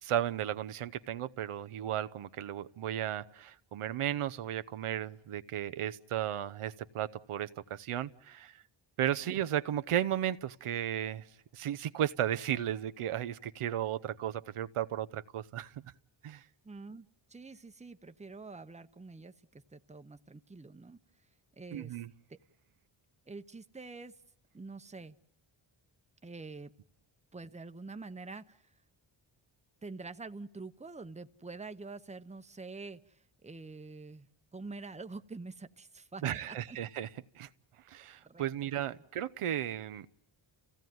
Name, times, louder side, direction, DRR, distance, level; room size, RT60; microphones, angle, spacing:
voice 1, 0.0-8.6 9.0-11.3 11.5-15.9 16.2-16.4 21.7-22.1 36.2-37.1 37.4-37.5 37.9-40.1, right 11 dB, 85° right, 12 dB, 0.8 m, -34 dB
voice 2, 16.6-21.0 21.5-22.0 22.3-22.4 23.3-24.2 24.5-25.2 26.2-26.7 27.3-28.7 29.8-34.3 34.5-36.8 38.2-38.5, right 3 dB, 15° right, 9 dB, 0.9 m, -46 dB
29.0 x 16.5 x 9.3 m, 0.87 s
cardioid pair, 85°, 50 cm